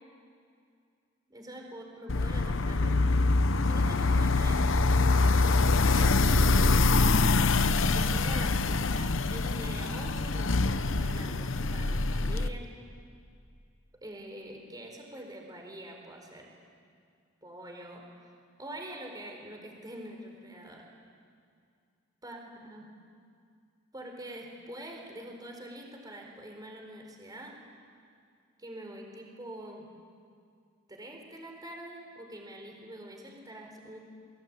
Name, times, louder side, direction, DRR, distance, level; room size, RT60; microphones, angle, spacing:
voice 1, 1.3-3.0 3.6-4.7 5.9-7.3 7.8-12.7 14.0-16.5 17.4-18.3 18.6-20.9 22.2-22.8 23.9-27.5 28.6-29.8 30.9-34.0, right 1 dB, 20° right, 1 dB, 4.4 m, -45 dB
sound 1, 2.1-12.5, left 3 dB, 65° left, 0.9 m, -25 dB
29.0 x 23.0 x 8.9 m, 2.3 s
head